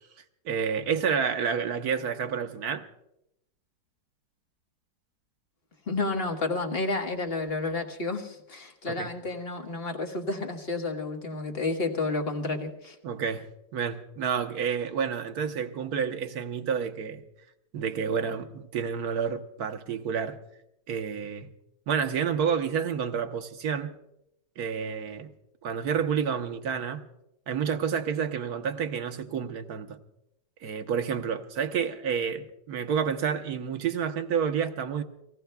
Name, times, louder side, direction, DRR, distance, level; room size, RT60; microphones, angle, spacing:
voice 1, 0.4-2.8 8.9-9.1 13.0-13.5 13.7-17.2 17.7-20.4 20.9-21.5 21.9-24.0 24.6-25.3 25.6-27.1 27.5-30.0 30.6-35.0, right 7 dB, 60° right, 1.3 m, -29 dB
voice 2, 5.9-12.9, left 3 dB, 35° left, 1.5 m, -31 dB
30.0 x 19.0 x 2.3 m
omnidirectional pair, 2.0 m